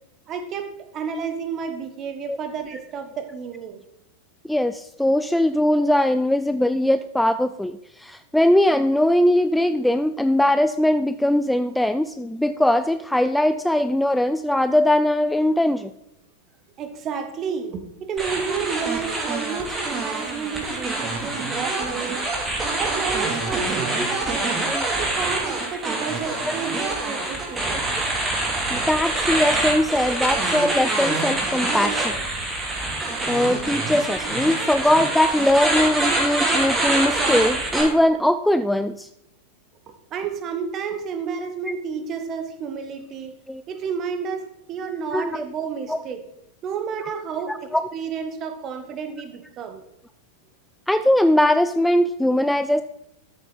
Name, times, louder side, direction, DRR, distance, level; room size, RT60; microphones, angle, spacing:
voice 1, 0.3-3.8 16.8-22.3 22.8-24.6 25.0-27.7 40.1-43.4 43.7-46.2 46.6-49.8, right 6 dB, 30° right, 8 dB, 1.2 m, -31 dB
voice 2, 4.5-15.9 24.6-24.9 26.4-26.5 27.7-27.8 28.7-32.2 33.3-39.1 43.5-43.6 45.1-45.4 45.9-46.0 47.0-47.1 47.5-47.8 50.9-52.8, left 1 dB, 5° left, 11 dB, 0.3 m, -21 dB
sound 1, 18.2-37.8, right 2 dB, 15° right, 2.5 m, -25 dB
13.0 x 7.0 x 3.9 m, 0.83 s
figure-of-eight pair, 90°, 0 cm